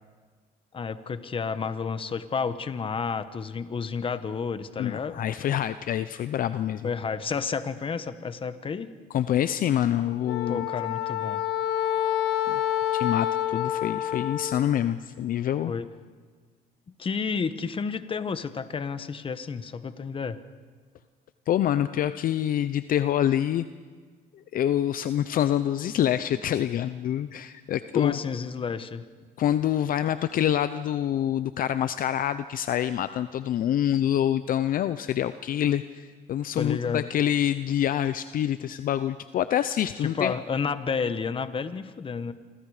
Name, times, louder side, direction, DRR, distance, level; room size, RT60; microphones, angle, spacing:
voice 1, 0.7-5.2 6.8-8.9 10.5-11.4 15.7-15.9 17.0-20.4 27.9-29.0 36.5-37.1 40.0-42.3, left 5 dB, 30° left, 12 dB, 1.2 m, -31 dB
voice 2, 4.8-6.9 9.1-10.7 12.5-12.6 12.9-15.7 21.5-23.6 24.5-28.2 29.4-40.3, left 11 dB, 55° left, 12 dB, 0.7 m, -26 dB
Wind instrument woodwind instrument, 10.2-14.7, left 11 dB, 80° left, 1.3 m, -28 dB
27.0 x 26.0 x 5.0 m, 1.5 s
cardioid pair, 110°, 17 cm